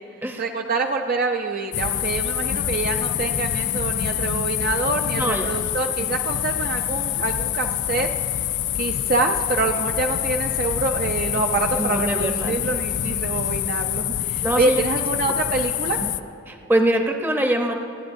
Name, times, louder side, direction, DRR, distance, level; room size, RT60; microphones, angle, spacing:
voice 1, 0.4-8.1 8.7-16.0, right 3 dB, 45° right, 4 dB, 0.5 m, -26 dB
sound 1, 1.7-16.2, left 11 dB, 55° left, 0.3 m, -26 dB
voice 2, 5.2-5.6 11.7-12.6 14.4-14.8 15.9-16.1 16.5-17.7, right 1 dB, 10° right, 3 dB, 0.7 m, -23 dB
29.0 x 10.0 x 2.6 m, 2.9 s
head